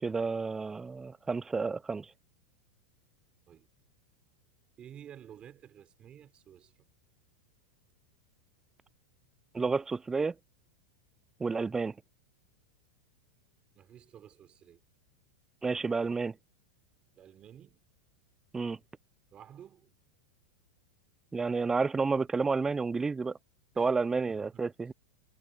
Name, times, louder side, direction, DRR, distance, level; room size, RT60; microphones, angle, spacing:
voice 1, 0.0-2.1 9.5-10.3 11.4-11.9 15.6-16.3 18.5-18.8 21.3-23.4 23.8-24.9, right 4 dB, 15° right, 0.3 m, -30 dB
voice 2, 4.8-6.8 13.7-14.8 17.2-17.8 19.3-20.0 23.7-23.9 24.3-24.9, right 10 dB, 30° right, 3.5 m, -52 dB
hypercardioid pair, 115°, 4 cm